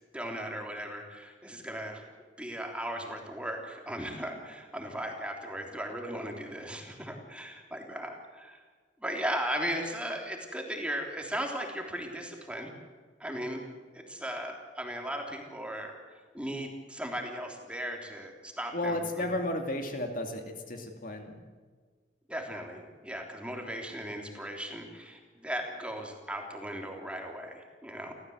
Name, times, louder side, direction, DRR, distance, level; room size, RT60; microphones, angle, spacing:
voice 1, 0.1-2.0 2.4-8.6 9.0-12.7 13.2-13.6 13.9-16.0 16.3-19.3 22.3-28.1, equal, 5° right, 1 dB, 3.3 m, -37 dB
voice 2, 18.7-21.4, left 1 dB, 50° left, 4 dB, 2.5 m, -33 dB
30.0 x 14.5 x 8.0 m, 1.5 s
head